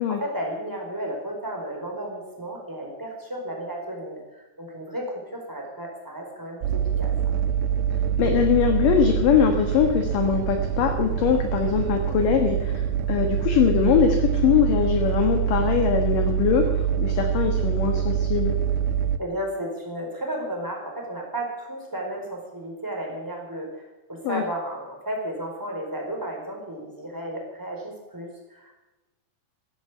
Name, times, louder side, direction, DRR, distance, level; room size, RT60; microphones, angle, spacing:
voice 1, 0.0-7.1 19.2-28.8, right 1 dB, 5° right, 0 dB, 4.2 m, -33 dB
sound 1, 6.6-19.2, right 8 dB, 85° right, 3.0 m, -25 dB
voice 2, 8.2-18.5 24.2-24.4, left 8 dB, 65° left, 4 dB, 2.6 m, -22 dB
15.0 x 12.0 x 8.2 m, 1.1 s
omnidirectional pair, 4.8 m